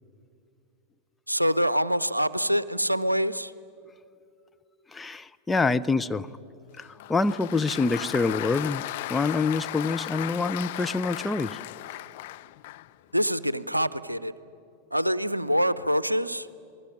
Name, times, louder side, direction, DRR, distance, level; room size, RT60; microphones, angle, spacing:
voice 1, 1.3-3.5 13.1-14.3 14.9-16.5, equal, 85° right, 17 dB, 0.6 m, -25 dB
voice 2, 4.9-6.3 6.8-11.6, left 3 dB, 10° left, 9 dB, 0.6 m, -26 dB
Applause, 6.8-12.9, left 18 dB, 50° left, 0.5 m, -36 dB
27.5 x 20.0 x 10.0 m, 2.5 s
figure-of-eight pair, 90°, 0 cm